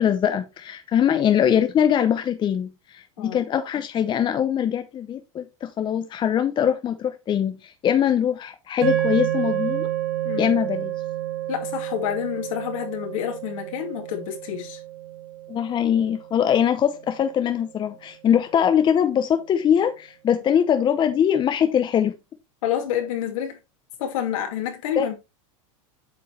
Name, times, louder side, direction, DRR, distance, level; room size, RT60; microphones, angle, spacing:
voice 1, 0.0-9.9 10.4-10.9 15.5-22.2 25.0-25.1, left 9 dB, 25° left, 0.7 m, -22 dB
sound 1, 8.8-17.2, right 12 dB, 60° right, 1.9 m, -30 dB
voice 2, 11.5-14.8 22.6-23.6 24.0-25.2, left 10 dB, 75° left, 2.5 m, -28 dB
8.3 x 5.4 x 3.3 m
supercardioid pair, 120°, 17 cm